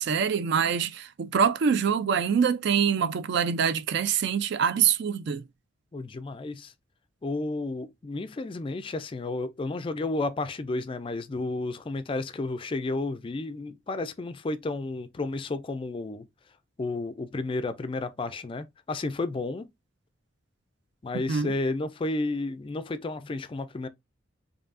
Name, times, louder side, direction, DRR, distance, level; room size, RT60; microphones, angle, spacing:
voice 1, 0.0-5.5 21.3-21.5, right 7 dB, 60° right, 0.4 m, -25 dB
voice 2, 5.9-6.7 7.2-16.3 16.8-19.7 21.0-23.9, left 2 dB, 25° left, 0.3 m, -32 dB
4.6 x 2.6 x 2.5 m
head